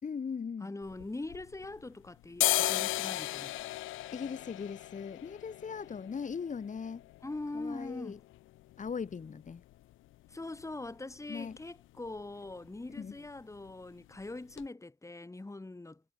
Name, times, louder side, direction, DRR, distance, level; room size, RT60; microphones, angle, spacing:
voice 1, 0.0-0.7 4.1-7.1 7.5-8.2 8.8-9.6 11.3-11.6 13.0-13.2, left 6 dB, 40° left, 3.0 m, -39 dB
voice 2, 0.6-3.6 7.2-8.2 10.3-16.0, left 2 dB, 15° left, 3.4 m, -42 dB
sound 1, 0.8-1.9 2.2-9.9 10.2-10.3 10.6-11.2 11.5-11.7 12.0-12.2 12.5-13.2 13.5-13.7 14.2-14.3 14.6-14.7, left 16 dB, 85° left, 0.8 m, -36 dB
cardioid pair, 90°, 20 cm